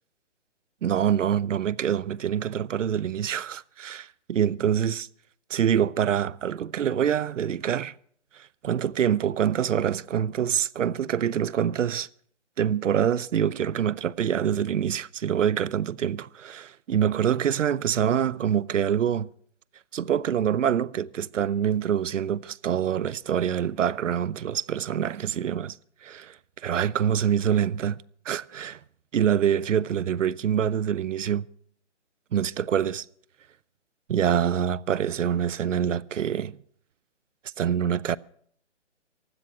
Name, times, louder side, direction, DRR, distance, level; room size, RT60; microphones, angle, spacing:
voice 1, 0.8-5.1 5.5-7.9 8.3-12.1 12.6-19.3 19.9-28.8 29.1-31.5 32.3-33.1 34.1-36.6 37.6-38.2, right 9 dB, 85° right, 0.6 m, -25 dB
15.5 x 11.5 x 5.9 m
hypercardioid pair, 170°, 36 cm